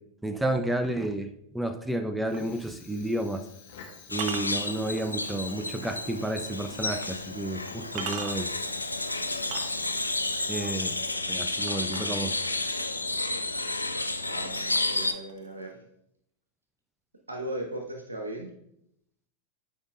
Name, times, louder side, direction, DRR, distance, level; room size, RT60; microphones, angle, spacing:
voice 1, 0.2-1.3 1.5-3.4 4.1-8.5 10.5-10.9 11.3-12.4, right 1 dB, 5° right, 7 dB, 0.5 m, -31 dB
Fire, 2.2-11.5, left 6 dB, 60° left, 1.5 m, -53 dB
sound 1, 2.3-2.5 4.1-5.5 6.1-6.2 7.0-7.1 7.7-8.6 9.4-10.1 11.7-12.6 13.5-13.6 14.1-14.5 14.7-15.7, right 6 dB, 45° right, 0.8 m, -39 dB
sound 2, 4.1-15.1, left 2 dB, 85° left, 0.4 m, -31 dB
voice 2, 14.2-15.8 17.3-18.5, right 1 dB, 80° right, 3 dB, 1.2 m, -37 dB
11.5 x 5.3 x 2.6 m, 0.79 s
figure-of-eight pair, 90°, 0 cm